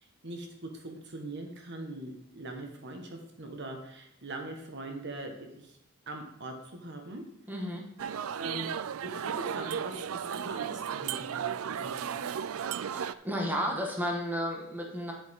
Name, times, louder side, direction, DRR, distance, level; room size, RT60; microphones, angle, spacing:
voice 1, 0.2-5.8 6.1-7.2 8.4-8.7 9.0-12.2, right 2 dB, 55° right, 3 dB, 1.5 m, -41 dB
voice 2, 7.5-7.8 12.8-15.1, equal, 10° right, -1 dB, 1.6 m, -33 dB
sound 1, 8.0-13.1, right 8 dB, 70° right, 0.4 m, -35 dB
9.8 x 8.2 x 3.7 m, 0.81 s
head